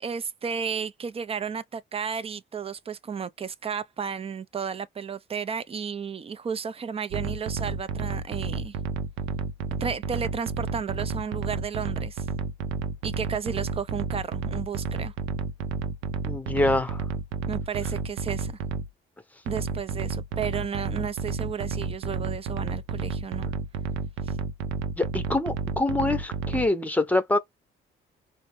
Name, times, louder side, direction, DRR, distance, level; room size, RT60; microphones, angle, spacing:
voice 1, 0.0-8.7 9.8-12.3 13.0-15.1 17.5-18.6 19.5-23.5 24.3-24.4, right 6 dB, 30° right, 0.5 m, -33 dB
sound 1, 7.1-18.9 19.5-26.7, right 4 dB, 90° right, 0.6 m, -31 dB
voice 2, 16.2-17.0 25.0-27.4, left 2 dB, 10° left, 0.8 m, -25 dB
4.2 x 2.1 x 3.1 m
cardioid pair, 90°, 20 cm